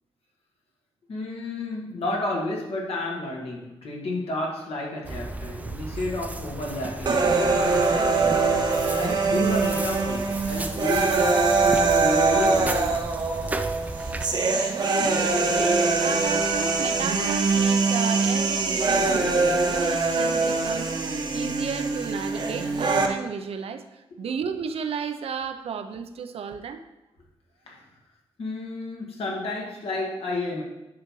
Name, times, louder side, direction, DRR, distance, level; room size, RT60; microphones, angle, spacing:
voice 1, 1.1-7.6 7.9-8.5 8.7-11.5 12.0-12.8 27.6-27.8 28.4-30.6, left 2 dB, 85° left, -2 dB, 1.7 m, -31 dB
sound 1, 5.0-14.3, right 2 dB, 15° right, 0.4 m, -35 dB
sound 2, 7.1-23.1, right 3 dB, 50° right, 0.8 m, -23 dB
voice 2, 15.5-26.8, right 6 dB, 85° right, 8 dB, 0.6 m, -33 dB
9.4 x 5.8 x 3.1 m, 0.96 s
wide cardioid pair, 155°, 10 cm